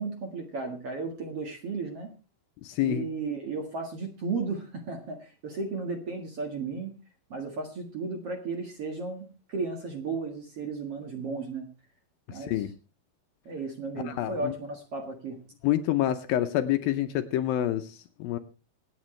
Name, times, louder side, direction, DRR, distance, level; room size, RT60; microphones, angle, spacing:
voice 1, 0.0-2.1 2.8-6.9 7.3-11.7 12.3-12.5 13.5-15.4, right 4 dB, 50° right, 4 dB, 2.0 m, -34 dB
voice 2, 2.6-3.1 12.3-12.7 14.1-14.5 15.6-18.4, left 12 dB, 75° left, 9 dB, 2.3 m, -27 dB
26.0 x 8.9 x 3.2 m, 0.31 s
omnidirectional pair, 4.6 m